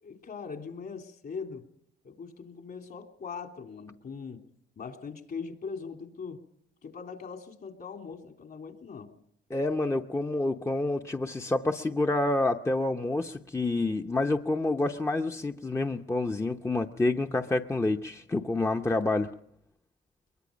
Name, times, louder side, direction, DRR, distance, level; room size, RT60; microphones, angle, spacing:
voice 1, 0.0-1.7 2.0-4.4 4.8-6.4 6.8-9.1, left 5 dB, 55° left, 4 dB, 3.1 m, -41 dB
voice 2, 9.5-19.3, left 2 dB, 15° left, 4 dB, 0.8 m, -28 dB
23.0 x 22.5 x 5.2 m, 0.73 s
cardioid pair, 90°, 20 cm